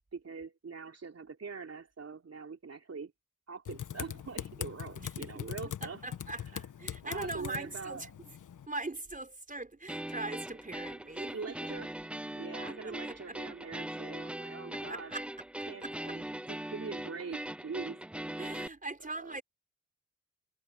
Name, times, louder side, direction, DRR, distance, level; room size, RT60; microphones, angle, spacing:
voice 1, 0.1-3.1 3.5-6.5 7.0-8.1 11.3-12.0 12.3-15.1 15.7-18.0 19.0-19.4, right 5 dB, 50° right, 3.5 m, -43 dB
Typing, 3.7-8.7, left 9 dB, 65° left, 1.5 m, -42 dB
voice 2, 5.8-8.1 8.7-11.3 12.8-13.2 14.7-15.2 15.8-15.9 18.4-19.4, right 2 dB, 25° right, 4.7 m, -41 dB
sound 1, 9.9-18.7, right 1 dB, 5° right, 0.4 m, -40 dB
supercardioid pair, 45°, 33 cm